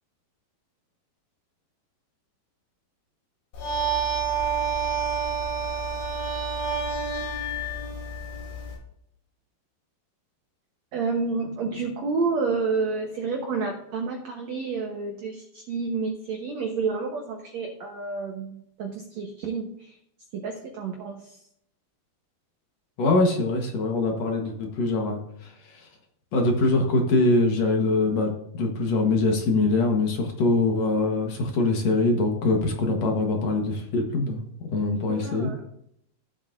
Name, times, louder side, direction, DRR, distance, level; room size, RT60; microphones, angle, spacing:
sound 1, 3.5-8.7, right 5 dB, 85° left, 5.2 m, -28 dB
voice 1, 10.9-20.0 20.3-21.4 35.1-35.5, right 4 dB, 85° right, 2 dB, 1.5 m, -29 dB
voice 2, 23.0-25.9 26.3-34.4 34.7-35.5, left 2 dB, 65° left, 2 dB, 1.8 m, -23 dB
15.5 x 7.6 x 2.6 m, 0.73 s
omnidirectional pair, 4.7 m